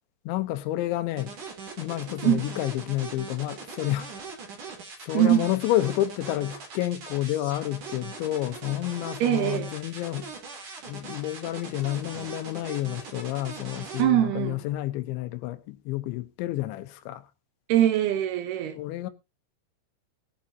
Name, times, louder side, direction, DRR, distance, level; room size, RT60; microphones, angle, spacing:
voice 1, 0.3-1.3 1.8-4.1 5.0-10.3 10.9-17.2 18.8-19.1, left 15 dB, 85° left, 3.3 m, -30 dB
sound 1, 1.2-14.0, right 5 dB, 50° right, 4.0 m, -41 dB
voice 2, 5.1-5.5 9.2-9.7 14.0-14.6 17.7-18.8, right 12 dB, 75° right, 2.7 m, -22 dB
21.0 x 7.1 x 2.8 m
omnidirectional pair, 5.2 m